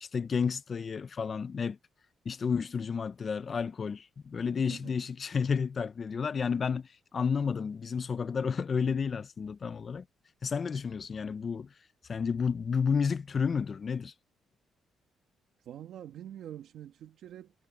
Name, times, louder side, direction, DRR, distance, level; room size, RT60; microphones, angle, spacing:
voice 1, 0.0-1.8 2.2-10.0 10.4-11.7 12.1-14.1, left 6 dB, 40° left, 0.8 m, -31 dB
voice 2, 15.7-17.5, right 11 dB, 75° right, 1.9 m, -45 dB
cardioid pair, 90°, 0 cm